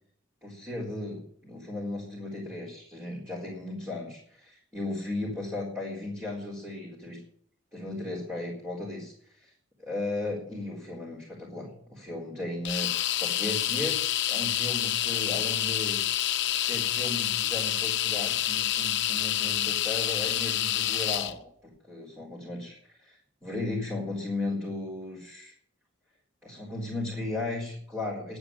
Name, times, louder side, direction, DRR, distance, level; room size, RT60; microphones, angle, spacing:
voice 1, 0.4-7.2 7.7-9.5 9.8-16.0 16.6-25.5 26.4-28.4, left 2 dB, 10° right, -5 dB, 4.0 m, -36 dB
sound 1, 12.6-21.3, left 12 dB, 60° left, 0.8 m, -28 dB
11.5 x 9.0 x 8.8 m, 0.63 s
head